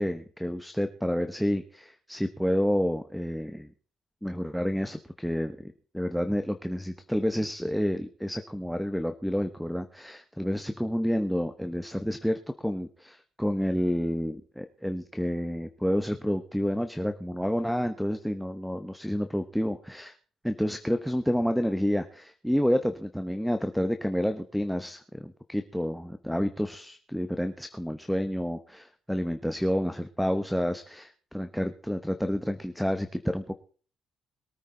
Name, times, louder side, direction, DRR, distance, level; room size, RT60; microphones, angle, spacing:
voice 1, 0.0-3.7 4.2-20.1 20.4-33.5, equal, ahead, 7 dB, 1.0 m, -29 dB
22.5 x 9.1 x 3.9 m, 0.42 s
cardioid pair, 90°, 0 cm